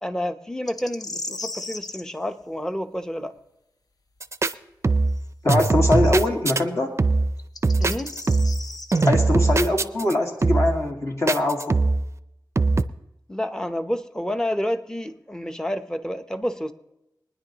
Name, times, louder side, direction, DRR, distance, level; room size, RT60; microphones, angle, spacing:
voice 1, 0.0-3.3 7.8-8.1 13.3-16.7, equal, 10° left, 9 dB, 0.8 m, -29 dB
sound 1, 0.7-2.0 5.2-5.3 7.4-9.1, left 3 dB, 60° left, 0.8 m, -35 dB
sound 2, 4.2-4.5 4.8-5.2 5.5-6.6 7.0-7.4 7.6-8.6 8.9-10.1 10.4-10.8 11.3-12.1 12.6-12.8, right 3 dB, 40° right, 0.5 m, -21 dB
voice 2, 5.4-6.9 9.1-11.8, left 2 dB, 40° left, 1 dB, 1.8 m, -23 dB
23.0 x 10.0 x 2.9 m, 0.87 s
cardioid pair, 55°, 7 cm